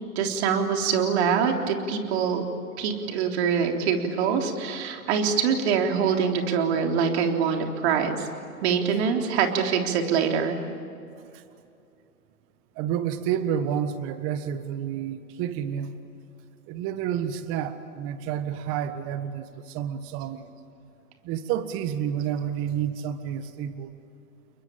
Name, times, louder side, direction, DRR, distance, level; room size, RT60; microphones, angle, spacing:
voice 1, 0.2-2.5 2.8-8.3 8.6-10.6, right 6 dB, 45° right, 3 dB, 3.7 m, -24 dB
voice 2, 12.7-16.0 16.7-20.5 21.2-24.0, right 9 dB, 30° right, 11 dB, 1.6 m, -30 dB
30.0 x 22.5 x 8.9 m, 2.6 s
hypercardioid pair, 135°, 46 cm